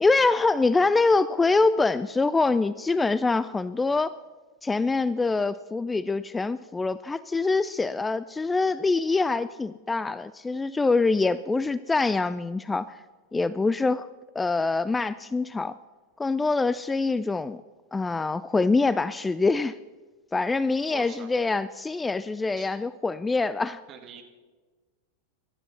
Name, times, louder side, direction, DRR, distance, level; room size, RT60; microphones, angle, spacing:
voice 1, 0.0-4.2 4.6-13.0 13.3-14.1 14.4-15.8 16.2-17.6 17.9-19.8 20.3-23.8, left 3 dB, 10° left, 16 dB, 0.3 m, -24 dB
voice 2, 20.9-21.3 22.6-22.7 23.9-24.2, right 7 dB, 30° right, 5 dB, 1.8 m, -43 dB
17.5 x 12.5 x 4.1 m, 1.3 s
figure-of-eight pair, 90°, 0 cm